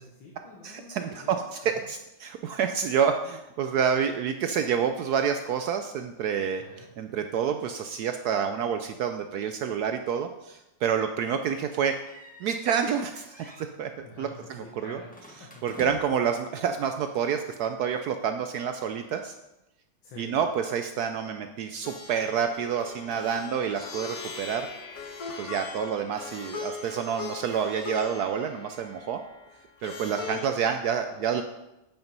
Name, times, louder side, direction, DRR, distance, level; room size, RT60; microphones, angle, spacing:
voice 1, 0.0-1.9 6.6-6.9 14.0-15.8 20.0-20.4 30.1-30.5, left 2 dB, 75° left, -2 dB, 1.9 m, -48 dB
voice 2, 0.6-1.4 1.9-6.6 7.0-11.9 12.4-13.9 14.2-14.3 14.8-15.0 15.6-19.3 20.2-24.7 25.4-29.2 29.8-31.4, right 7 dB, 75° right, 7 dB, 0.9 m, -28 dB
sound 1, 11.9-13.0 13.3-13.7 15.1-16.3, left 1 dB, 5° left, 0.8 m, -47 dB
Plucked string instrument, 21.8-30.4, left 5 dB, 50° left, 1.4 m, -40 dB
8.8 x 5.8 x 5.3 m, 0.95 s
omnidirectional pair, 2.1 m